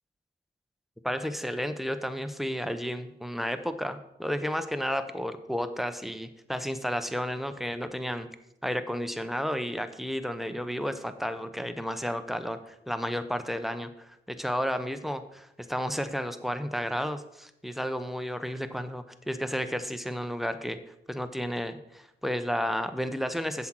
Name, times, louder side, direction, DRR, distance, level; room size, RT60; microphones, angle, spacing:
voice 1, 1.0-8.3 8.6-20.8 21.1-23.7, equal, ahead, 10 dB, 0.7 m, -32 dB
7.8 x 7.5 x 4.5 m, 0.82 s
cardioid pair, 85°, 19 cm